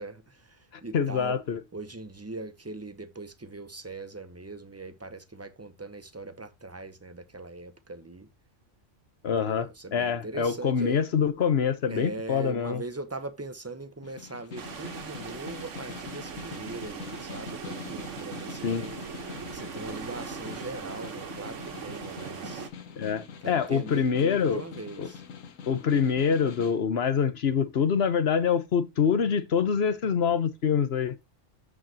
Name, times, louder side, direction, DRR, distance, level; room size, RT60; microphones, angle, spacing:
voice 1, 0.0-1.4 1.7-8.3 9.3-11.0 11.9-19.0 19.5-22.7 23.4-25.2, right 2 dB, 20° right, 0.5 m, -40 dB
voice 2, 0.9-1.6 9.2-12.8 18.6-18.9 23.0-24.6 25.0-25.1 25.7-31.2, left 7 dB, 55° left, 1.1 m, -25 dB
Snare drum, 14.0-26.8, left 6 dB, 90° left, 1.3 m, -44 dB
sound 1, 14.6-22.7, right 6 dB, 75° right, 1.4 m, -40 dB
13.5 x 4.8 x 2.8 m
omnidirectional pair, 1.3 m